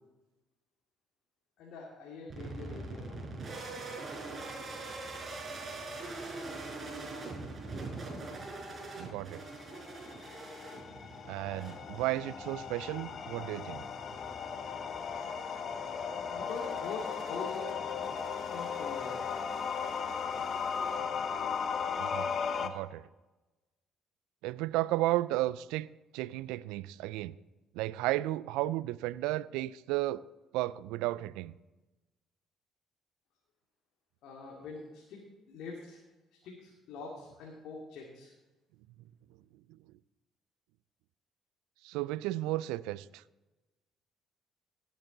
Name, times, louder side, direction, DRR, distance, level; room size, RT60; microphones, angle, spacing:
voice 1, 1.6-3.2 16.3-17.8 18.5-19.2 34.2-36.0 36.3-38.3, left 4 dB, 70° left, -2 dB, 2.3 m, -44 dB
sound 1, 2.3-21.5, right 2 dB, 40° right, 4.9 m, -44 dB
voice 2, 9.0-9.5 11.3-13.8 22.0-22.3 22.6-23.0 24.4-25.9 26.1-27.3 27.7-30.2 30.5-31.5 41.8-43.2, right 17 dB, 80° right, 20 dB, 0.3 m, -33 dB
sound 2, 9.5-22.7, left 6 dB, 55° left, 1.0 m, -36 dB
17.0 x 9.2 x 4.0 m, 1.1 s
hypercardioid pair, 60°, 0 cm